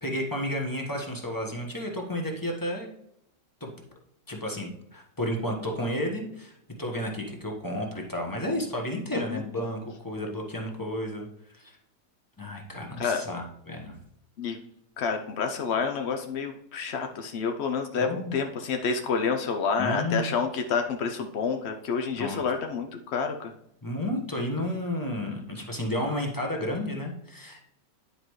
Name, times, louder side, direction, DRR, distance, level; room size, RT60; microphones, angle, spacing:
voice 1, 0.0-2.9 3.6-3.7 4.3-11.3 11.5-11.8 12.4-14.0 18.0-18.4 19.8-20.3 22.1-22.4 23.8-27.6, left 1 dB, 15° left, 1 dB, 0.9 m, -32 dB
voice 2, 15.0-23.5, left 5 dB, 70° left, 5 dB, 0.6 m, -29 dB
9.9 x 5.1 x 3.1 m, 0.76 s
omnidirectional pair, 1.9 m